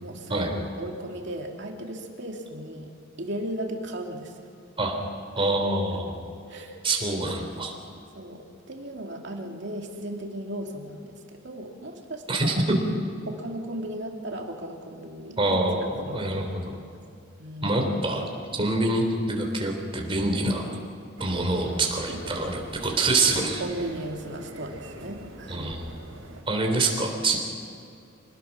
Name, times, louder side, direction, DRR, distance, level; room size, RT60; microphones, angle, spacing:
voice 1, 0.0-2.9 3.2-4.3 5.4-5.5 5.9-6.0 6.5-6.8 8.1-12.6 13.3-15.6 16.0-16.8 17.4-17.7 22.1-22.2 23.1-23.2 23.6-25.7, right 1 dB, 60° right, 1 dB, 2.7 m, -36 dB
voice 2, 5.4-6.1 6.8-7.7 12.3-12.5 15.4-16.7 17.6-20.7 21.2-22.5 22.8-23.6 25.5-25.8 26.5-27.4, right 2 dB, 25° right, 2 dB, 3.6 m, -25 dB
sound 1, 21.2-26.4, right 1 dB, 85° right, 4.1 m, -43 dB
26.5 x 19.0 x 6.1 m, 2.4 s
head